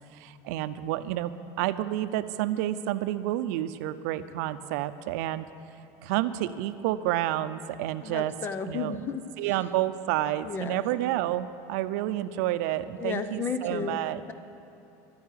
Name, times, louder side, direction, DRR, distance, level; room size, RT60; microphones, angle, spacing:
voice 1, 0.1-1.3 1.6-5.5 6.0-8.3 8.7-9.0 9.4-14.2, right 14 dB, 75° right, 12 dB, 0.6 m, -29 dB
voice 2, 8.0-9.2 10.4-10.8 13.0-14.0, left 6 dB, 25° left, 10 dB, 0.6 m, -33 dB
12.5 x 9.5 x 9.2 m, 3.0 s
cardioid pair, 160°, 9 cm